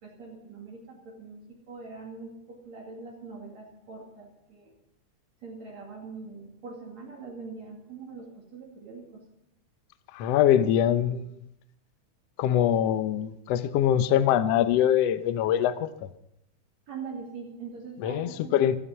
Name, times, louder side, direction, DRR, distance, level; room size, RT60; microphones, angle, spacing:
voice 1, 0.0-4.7 5.4-9.2 16.9-18.8, right 4 dB, 60° right, -3 dB, 3.7 m, -43 dB
voice 2, 10.1-11.3 12.4-16.1 18.0-18.8, left 10 dB, 70° left, 11 dB, 1.6 m, -23 dB
15.5 x 14.0 x 5.5 m, 0.78 s
omnidirectional pair, 3.6 m